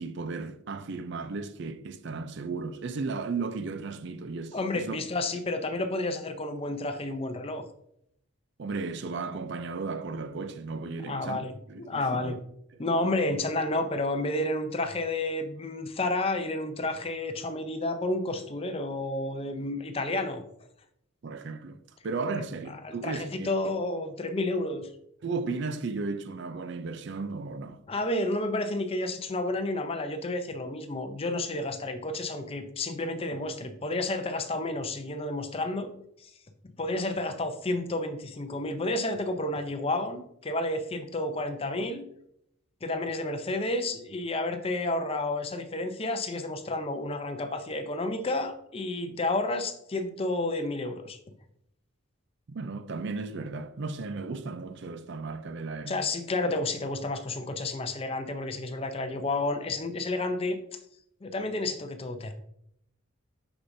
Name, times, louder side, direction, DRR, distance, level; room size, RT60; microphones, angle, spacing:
voice 1, 0.0-5.0 8.6-12.4 21.2-23.5 25.2-27.8 49.1-49.2 52.5-56.0, right 4 dB, 55° right, 0.5 m, -35 dB
voice 2, 4.5-7.7 11.1-12.4 12.8-20.4 22.8-24.9 27.9-35.9 36.2-36.3 36.6-42.0 42.8-51.2 55.9-60.6 61.2-62.3, left 2 dB, 25° left, 0.5 m, -31 dB
6.5 x 6.1 x 2.7 m
head